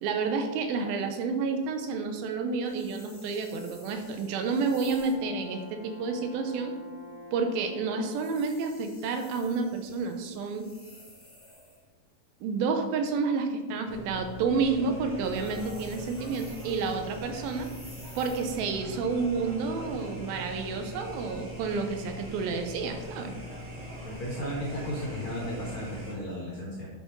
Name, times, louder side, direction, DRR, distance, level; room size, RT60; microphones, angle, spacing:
voice 1, 0.0-6.7 7.3-10.7 12.4-17.7 18.2-23.3, right 4 dB, 90° right, 5 dB, 2.7 m, -30 dB
sound 1, 2.6-5.3 8.0-11.9 15.1-18.7, left 1 dB, 15° left, 0.4 m, -53 dB
Brass instrument, 4.2-8.7, left 1 dB, 90° left, 3.1 m, -47 dB
sound 2, 13.9-26.1, equal, 50° right, 2.8 m, -41 dB
voice 2, 24.0-26.9, equal, 55° left, -3 dB, 1.5 m, -34 dB
9.9 x 5.1 x 3.9 m, 1.2 s
omnidirectional pair, 4.1 m